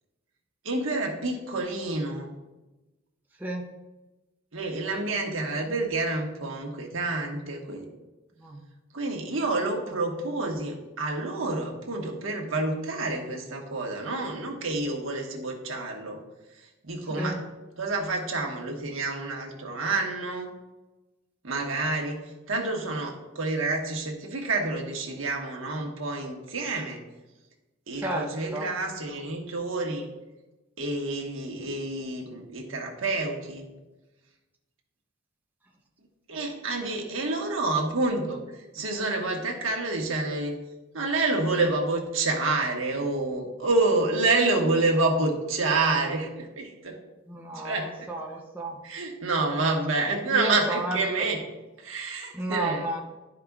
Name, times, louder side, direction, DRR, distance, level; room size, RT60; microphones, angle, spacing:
voice 1, 0.6-2.3 4.5-7.9 8.9-16.2 16.8-17.4 17.8-20.5 21.4-27.0 27.9-30.1 30.8-33.6 36.3-40.6 40.9-47.0 47.5-48.1 48.8-51.4 51.8-52.8, right 3 dB, 70° right, 1 dB, 1.4 m, -28 dB
voice 2, 28.0-28.7 47.3-48.8 50.3-51.0 52.3-53.0, right 1 dB, 10° right, 0 dB, 0.6 m, -32 dB
12.0 x 5.1 x 2.4 m, 1.1 s
head